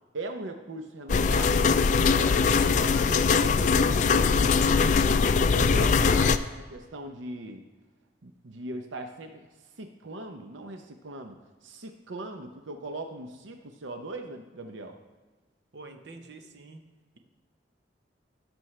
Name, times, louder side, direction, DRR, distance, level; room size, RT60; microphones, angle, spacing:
voice 1, 0.1-1.7 2.0-5.0 5.4-7.6 8.2-9.5 9.8-15.0, right 2 dB, 90° right, 5 dB, 0.7 m, -39 dB
sound 1, 1.1-6.4, left 5 dB, 40° left, 0.3 m, -22 dB
voice 2, 15.7-16.8, right 3 dB, 60° right, 5 dB, 0.9 m, -46 dB
16.5 x 6.2 x 3.2 m, 1.3 s
head